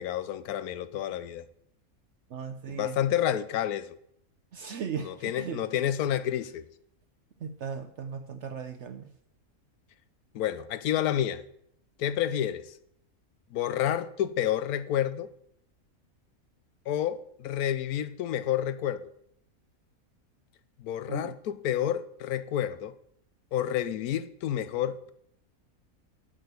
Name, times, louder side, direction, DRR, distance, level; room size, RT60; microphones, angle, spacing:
voice 1, 0.0-1.4 2.7-4.0 5.0-6.6 10.3-11.4 12.0-12.7 13.5-15.3 16.9-19.1 20.8-22.9 23.5-25.1, left 10 dB, 90° left, 1.2 m, -29 dB
voice 2, 2.3-3.0 4.5-5.6 7.4-9.1 21.1-21.3, right 7 dB, 60° right, 0.9 m, -37 dB
8.7 x 6.4 x 8.1 m
omnidirectional pair, 1.5 m